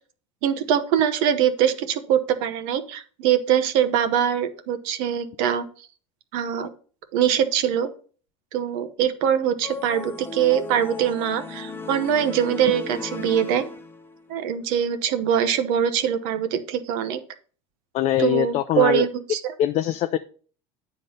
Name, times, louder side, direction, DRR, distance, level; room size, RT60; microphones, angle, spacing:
voice 1, 0.4-5.7 6.3-6.7 7.1-7.9 8.5-13.6 14.3-17.2 18.2-19.4, right 9 dB, 70° right, 9 dB, 1.0 m, -23 dB
sound 1, 9.6-14.3, left 3 dB, 15° left, 0.7 m, -36 dB
voice 2, 17.9-19.1 19.6-20.2, left 12 dB, 50° left, 9 dB, 0.5 m, -22 dB
9.0 x 3.9 x 5.5 m, 0.42 s
supercardioid pair, 110°, 15 cm